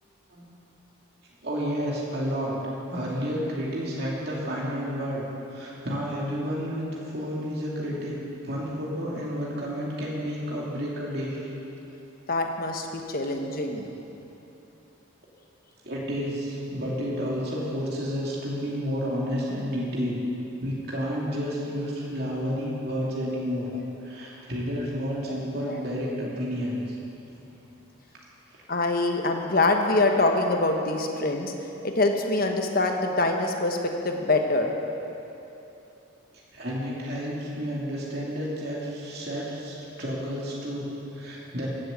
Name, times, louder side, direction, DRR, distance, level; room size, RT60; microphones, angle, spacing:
voice 1, 1.4-2.6 2.9-5.2 5.5-8.2 8.4-11.5 15.8-20.2 20.6-23.7 24.0-27.0 27.3-27.4 36.5-41.7, equal, 50° right, -5 dB, 2.5 m, -31 dB
voice 2, 12.3-13.9 25.7-25.8 28.7-31.5 31.8-34.7, left 2 dB, 45° left, 3 dB, 1.2 m, -24 dB
15.5 x 7.7 x 8.2 m, 3.0 s
head